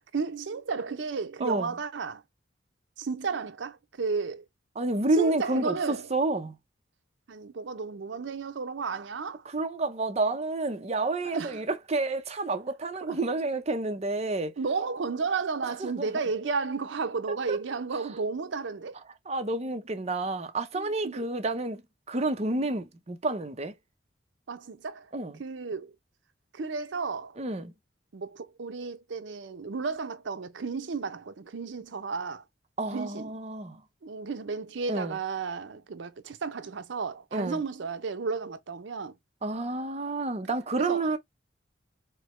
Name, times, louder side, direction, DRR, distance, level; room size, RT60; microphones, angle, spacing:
voice 1, 0.0-2.2 3.0-4.4 5.2-6.1 7.3-9.4 11.2-11.6 13.0-13.2 14.6-19.0 20.7-21.3 24.5-25.1 25.4-25.9 26.5-27.4 28.1-32.4 32.9-33.4 34.0-39.1 40.8-41.1, right 4 dB, 75° right, 0.6 m, -33 dB
voice 2, 4.8-6.5 9.5-14.5 15.8-16.1 19.3-21.8 22.1-23.7 25.1-25.3 27.4-27.7 32.8-33.8 34.9-35.2 37.3-37.6 39.4-41.2, right 2 dB, 35° right, 0.7 m, -29 dB
4.5 x 2.1 x 3.1 m
head